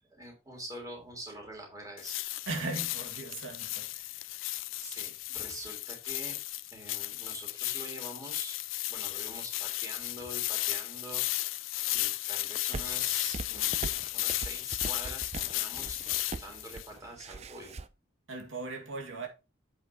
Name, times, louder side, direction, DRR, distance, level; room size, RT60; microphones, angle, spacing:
voice 1, 0.1-2.2 4.8-6.4 6.7-8.6 8.9-11.5 11.9-16.0 16.3-17.8, right 1 dB, 15° right, 3.2 m, -45 dB
sound 1, 2.0-16.9, left 17 dB, 85° left, 0.4 m, -34 dB
voice 2, 2.5-4.2 18.3-19.3, right 3 dB, 85° right, 1.9 m, -38 dB
sound 2, 12.7-17.9, right 3 dB, 35° right, 0.5 m, -41 dB
8.1 x 5.6 x 4.1 m
head